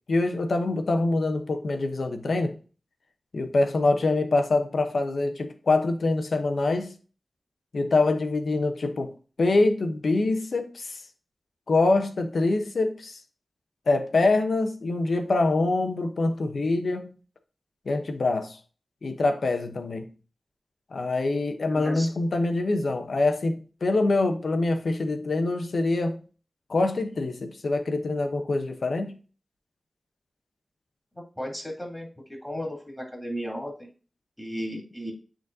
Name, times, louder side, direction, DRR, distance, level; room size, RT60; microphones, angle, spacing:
voice 1, 0.1-2.6 3.3-6.9 7.7-9.1 9.4-11.0 11.7-13.2 13.9-17.1 17.9-18.6 19.0-20.1 20.9-26.2 26.7-29.2, left 2 dB, 80° left, 0.9 m, -25 dB
voice 2, 21.7-22.1 31.1-33.9 34.4-35.1, equal, 10° left, 3.2 m, -35 dB
9.1 x 4.0 x 2.7 m
cardioid pair, 55°, 0 cm